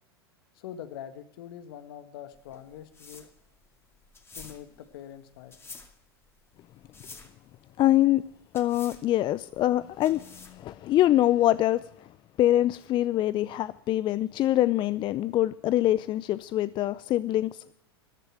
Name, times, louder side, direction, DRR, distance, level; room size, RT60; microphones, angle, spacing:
voice 1, 0.5-3.3 4.3-5.6, left 10 dB, 65° left, 11 dB, 1.7 m, -43 dB
sound 1, 2.3-10.7, left 4 dB, 20° left, 2.4 m, -50 dB
voice 2, 7.8-8.2 8.5-11.8 12.4-17.7, left 14 dB, 35° left, 17 dB, 0.5 m, -24 dB
14.5 x 11.5 x 7.7 m, 0.69 s
hypercardioid pair, 90°, 13 cm